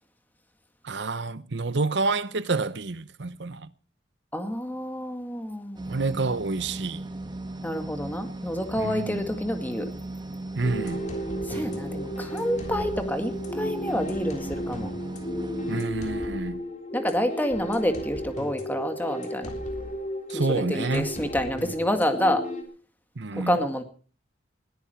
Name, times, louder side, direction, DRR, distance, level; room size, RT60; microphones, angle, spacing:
voice 1, 0.8-3.7 5.9-7.0 8.8-9.2 10.6-11.1 15.7-16.7 20.3-21.2 23.2-23.6, right 3 dB, 70° right, 0.9 m, -28 dB
voice 2, 4.3-5.9 7.6-9.9 11.5-14.9 16.9-19.5 20.5-22.4 23.4-23.8, equal, 10° left, 2.0 m, -28 dB
sound 1, 5.8-15.8, right 2 dB, 25° right, 1.6 m, -37 dB
sound 2, 10.6-22.6, equal, 40° left, 3.5 m, -34 dB
20.5 x 14.0 x 4.5 m
head